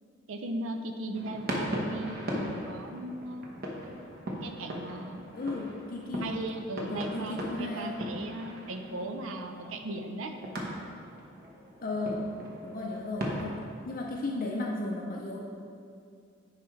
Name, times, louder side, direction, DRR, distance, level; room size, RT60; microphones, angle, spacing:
voice 1, 0.3-3.5 4.4-5.3 6.2-10.3, right 1 dB, 80° right, 6 dB, 0.6 m, -37 dB
sound 1, 1.1-13.7, equal, 50° right, 1.0 m, -39 dB
voice 2, 5.3-6.4 6.9-8.0 11.8-12.2 12.6-13.6 13.9-15.4, left 2 dB, 45° left, -2 dB, 0.5 m, -34 dB
9.5 x 4.8 x 3.2 m, 2.4 s
head